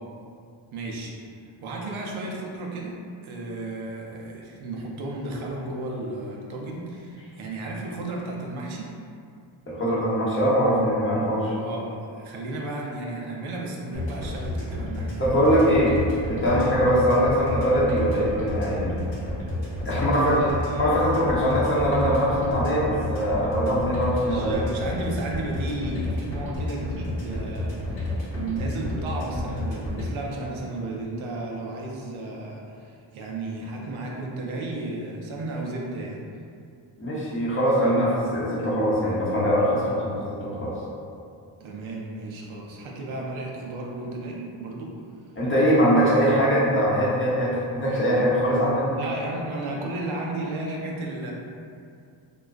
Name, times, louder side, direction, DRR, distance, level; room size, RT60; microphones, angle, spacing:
voice 1, 0.7-1.1 1.6-8.9 11.6-15.9 16.6-16.8 19.8-21.0 21.4-21.6 24.2-36.2 41.6-45.0 45.8-46.2 48.9-51.3, right 2 dB, 80° right, -1 dB, 0.6 m, -34 dB
voice 2, 9.7-11.5 15.2-15.9 16.3-19.0 19.8-20.4 20.8-24.6 37.0-40.7 45.4-48.9, equal, 25° left, -7 dB, 0.7 m, -22 dB
sound 1, 13.9-30.1, left 2 dB, 65° left, 0.9 m, -31 dB
2.3 x 2.3 x 2.4 m, 2.4 s
cardioid pair, 60°, 48 cm